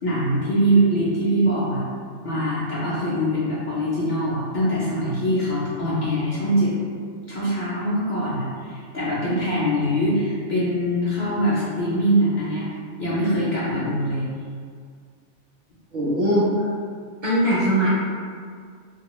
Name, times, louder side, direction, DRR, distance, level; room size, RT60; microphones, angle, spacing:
voice 1, 0.0-1.9 2.2-6.7 7.3-12.7 13.0-14.3, equal, 55° left, -9 dB, 0.5 m, -23 dB
voice 2, 15.9-16.7 17.2-17.9, equal, 55° right, -8 dB, 0.5 m, -20 dB
2.4 x 2.3 x 2.9 m, 2.1 s
omnidirectional pair, 1.3 m